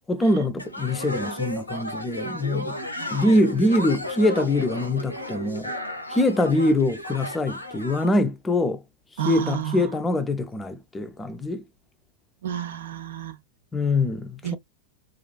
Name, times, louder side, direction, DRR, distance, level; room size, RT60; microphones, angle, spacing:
voice 1, 0.1-2.8 3.1-5.7 6.1-8.8 9.1-11.7 13.7-14.6, left 1 dB, 15° left, 0.4 m, -23 dB
sound 1, 0.6-8.1, left 1 dB, 85° left, 0.5 m, -34 dB
voice 2, 9.2-9.8 12.4-13.4 14.4-14.6, right 11 dB, 60° right, 0.3 m, -30 dB
2.4 x 2.2 x 2.3 m
figure-of-eight pair, 90°, 0 cm